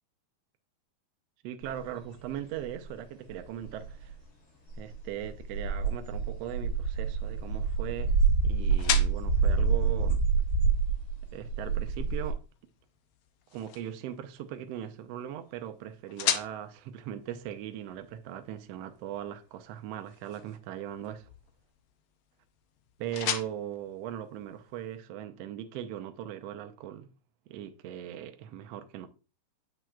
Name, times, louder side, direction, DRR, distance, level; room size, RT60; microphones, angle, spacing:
voice 1, 1.4-4.1 4.8-8.2 8.4-10.2 11.3-12.4 13.5-21.3 23.0-27.1 27.5-29.1, right 11 dB, 75° right, 1.5 m, -39 dB
sound 1, 1.6-1.7 2.6-2.7 3.3-3.4 3.6-4.1 4.7-12.3, right 5 dB, 55° left, 4.0 m, -27 dB
sound 2, 6.1-25.0, left 9 dB, 75° left, 1.3 m, -40 dB
7.8 x 6.0 x 2.3 m
omnidirectional pair, 3.4 m